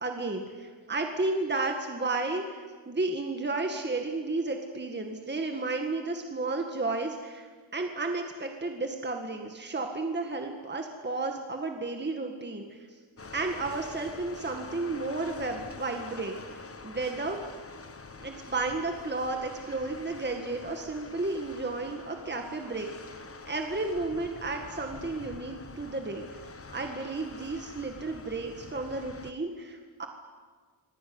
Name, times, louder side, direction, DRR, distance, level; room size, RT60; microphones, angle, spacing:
voice 1, 0.0-13.0 13.3-16.4 16.8-17.4 18.2-22.9 23.5-26.3 26.7-30.1, right 3 dB, 20° right, 4 dB, 1.9 m, -32 dB
sound 1, 13.2-29.3, left 4 dB, 30° left, 1.3 m, -46 dB
27.0 x 21.0 x 9.6 m, 1.5 s
wide cardioid pair, 170°, 47 cm